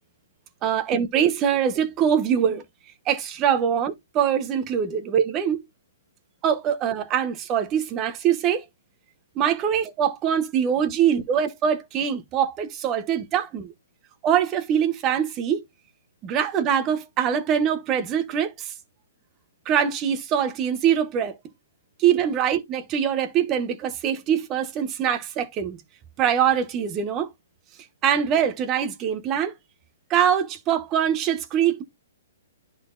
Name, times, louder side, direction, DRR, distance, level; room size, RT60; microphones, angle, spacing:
voice 1, 0.6-2.6 3.1-5.6 6.4-8.6 9.4-13.7 14.2-15.6 16.2-18.5 19.7-21.3 22.0-25.8 26.2-27.3 28.0-29.5 30.1-31.8, right 8 dB, 20° right, 1.0 m, -23 dB
11.0 x 4.1 x 2.5 m
hypercardioid pair, 155°, 0 cm